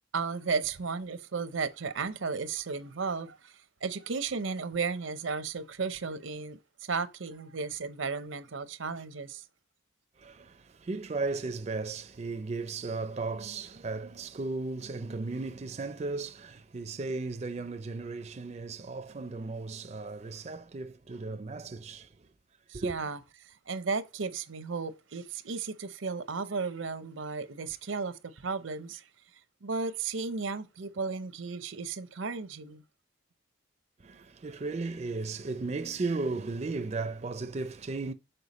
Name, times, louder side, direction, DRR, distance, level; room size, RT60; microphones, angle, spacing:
voice 1, 0.1-3.5 3.8-9.4 22.7-23.2 23.4-29.0 29.6-32.8, right 4 dB, 85° right, 0.7 m, -34 dB
voice 2, 10.2-22.1 22.7-23.0 34.0-38.1, right 3 dB, 35° right, 0.4 m, -35 dB
6.7 x 4.5 x 4.1 m
head